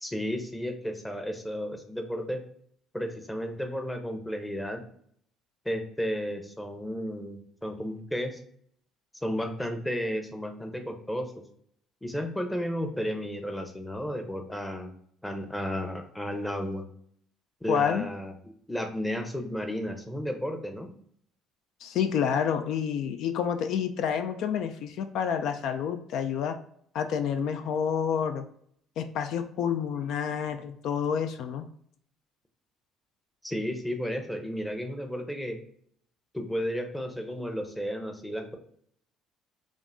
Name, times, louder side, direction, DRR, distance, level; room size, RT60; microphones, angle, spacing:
voice 1, 0.0-2.4 2.9-4.8 5.6-8.4 9.2-11.3 12.0-14.9 15.2-16.8 17.6-18.3 18.7-20.9 33.4-35.6 36.3-38.6, equal, 10° left, 5 dB, 0.7 m, -33 dB
voice 2, 17.7-18.1 21.8-26.6 26.9-28.4 29.0-31.7, left 7 dB, 70° left, 8 dB, 0.3 m, -29 dB
5.1 x 2.4 x 2.5 m, 0.64 s
supercardioid pair, 80°, 0 cm